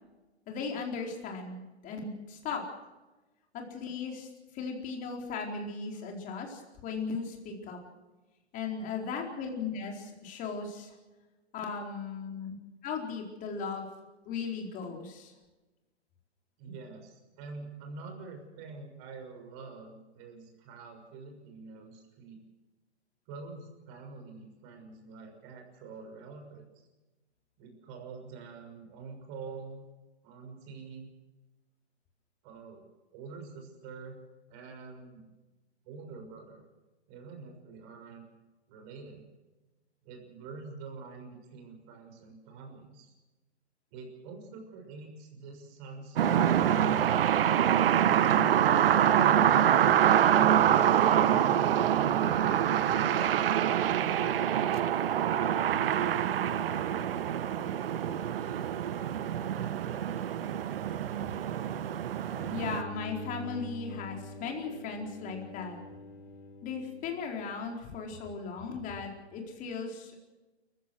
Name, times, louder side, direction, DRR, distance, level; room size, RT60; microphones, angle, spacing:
voice 1, 0.5-2.6 3.5-7.8 8.5-11.0 11.5-12.5 12.8-13.9 14.2-15.3 61.2-61.3 62.5-65.8 66.6-70.2, left 5 dB, 25° left, 1 dB, 4.4 m, -37 dB
voice 2, 16.6-22.4 23.3-26.7 27.6-29.9 30.2-31.1 32.4-32.8 33.1-34.2 34.5-35.3 35.8-36.7 37.1-38.2 38.7-39.2 40.0-43.1 43.9-47.3 48.1-52.4 53.0-56.7, right 4 dB, 35° right, 4 dB, 6.4 m, -46 dB
sound 1, 46.2-62.8, right 10 dB, 55° right, 1.2 m, -25 dB
sound 2, 62.3-67.7, left 1 dB, 45° left, 5.6 m, -45 dB
29.0 x 15.5 x 6.3 m, 1.1 s
hypercardioid pair, 135°, 33 cm